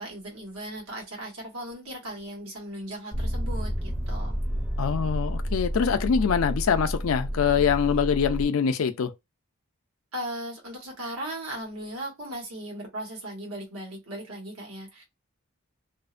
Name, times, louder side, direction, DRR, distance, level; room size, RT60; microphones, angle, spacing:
voice 1, 0.0-4.4 7.5-7.7 10.1-15.0, right 1 dB, 85° right, 1.2 m, -37 dB
Motor vehicle (road), 3.1-8.5, equal, ahead, 0.5 m, -30 dB
voice 2, 4.8-9.1, left 7 dB, 70° left, 0.4 m, -24 dB
2.5 x 2.1 x 2.4 m
head